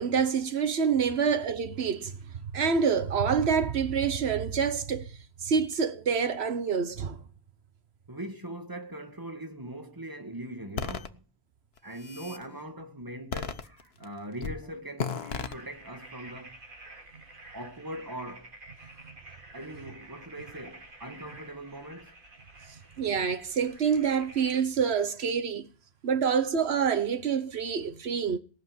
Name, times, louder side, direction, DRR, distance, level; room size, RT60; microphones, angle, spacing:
voice 1, 0.0-2.1 2.5-5.1 5.4-7.2 19.0-19.1 22.7-25.7 26.0-28.4, right 6 dB, 85° right, 1.3 m, -27 dB
voice 2, 8.1-11.2 11.8-16.6 17.5-19.1 19.5-22.1, right 1 dB, 20° right, 1.8 m, -41 dB
sound 1, 10.8-11.1 11.8-12.4 13.3-14.0 14.4-14.6 15.0-15.5, left 6 dB, 75° left, 1.3 m, -34 dB
sound 2, 15.1-24.6, right 2 dB, 55° right, 2.4 m, -50 dB
19.0 x 6.6 x 9.6 m
omnidirectional pair, 1.1 m